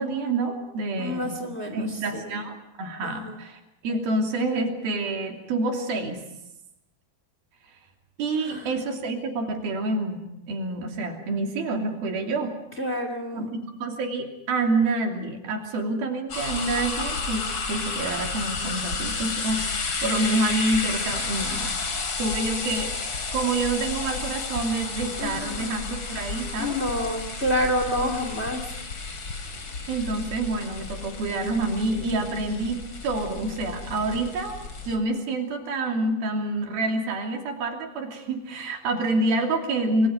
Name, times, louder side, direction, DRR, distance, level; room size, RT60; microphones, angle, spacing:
voice 1, 0.0-1.3 1.7-6.2 8.2-12.5 13.3-21.8 22.2-22.9 23.3-26.8 29.9-34.6 34.8-40.1, right 2 dB, 80° right, 2 dB, 4.7 m, -27 dB
voice 2, 1.0-2.4 3.0-3.4 8.4-8.8 12.8-13.5 25.2-25.8 26.6-28.6, left 1 dB, 20° left, 6 dB, 2.3 m, -29 dB
sound 1, 16.3-35.0, left 4 dB, 35° left, 3.1 m, -32 dB
29.0 x 22.0 x 5.3 m, 0.88 s
omnidirectional pair, 4.2 m